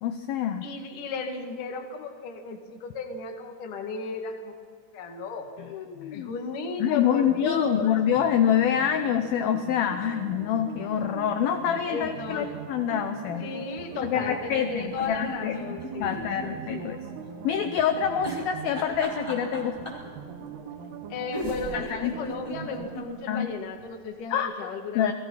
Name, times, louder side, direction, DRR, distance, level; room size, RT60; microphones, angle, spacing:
voice 1, 0.0-0.7 5.6-6.3 6.8-13.4 14.0-15.6 16.0-17.0 17.4-19.8 21.7-22.1 23.3-23.5 24.3-24.5 25.0-25.1, left 9 dB, 75° left, 7 dB, 2.4 m, -26 dB
voice 2, 0.6-4.5 4.9-5.5 6.1-7.9 11.9-12.5 13.4-16.9 21.1-25.1, left 4 dB, 55° left, 3 dB, 3.2 m, -34 dB
sound 1, 7.0-23.0, right 6 dB, 70° right, 3.6 m, -41 dB
sound 2, 14.9-16.8 17.1-17.2 18.2-20.1 21.0-21.1 21.3-23.1 23.5-23.6 23.8-23.9, equal, 5° left, 4.4 m, -36 dB
30.0 x 20.5 x 5.7 m, 2.1 s
omnidirectional pair, 5.2 m